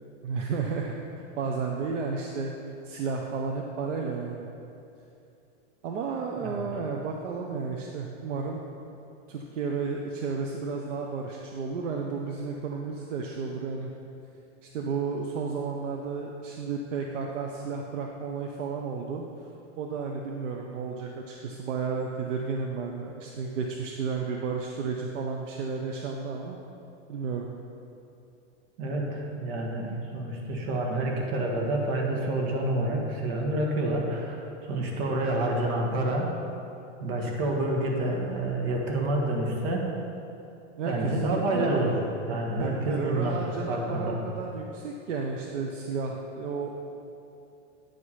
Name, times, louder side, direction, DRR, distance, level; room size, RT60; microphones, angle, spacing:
voice 1, 0.2-1.0 1.4-2.5 2.8-4.5 5.8-8.6 9.3-13.9 14.6-19.2 19.8-26.6 27.1-27.5 40.8-42.0 42.6-46.7, right 5 dB, 90° right, 1 dB, 0.9 m, -32 dB
voice 2, 28.8-36.3 37.0-39.9 40.8-41.9 42.3-44.2, right 1 dB, 55° right, 0 dB, 1.6 m, -28 dB
9.3 x 5.1 x 5.6 m, 2.7 s
supercardioid pair, 140°, 36 cm